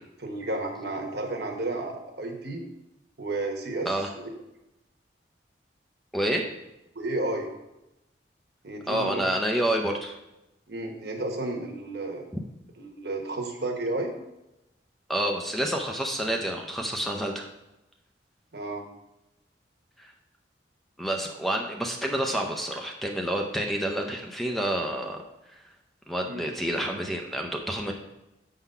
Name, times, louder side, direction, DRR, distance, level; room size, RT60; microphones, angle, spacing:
voice 1, 0.2-2.6 3.2-3.9 4.1-4.3 6.9-7.5 8.6-9.3 10.7-12.2 12.8-14.1 18.5-18.9 26.3-26.4, right 2 dB, 60° right, 3 dB, 1.1 m, -32 dB
voice 2, 6.1-6.4 8.9-10.1 12.3-12.4 15.1-17.5 20.0-20.1 21.0-25.2 25.5-25.6 26.1-27.9, right 1 dB, ahead, 2 dB, 0.5 m, -28 dB
7.1 x 3.9 x 5.5 m, 0.93 s
head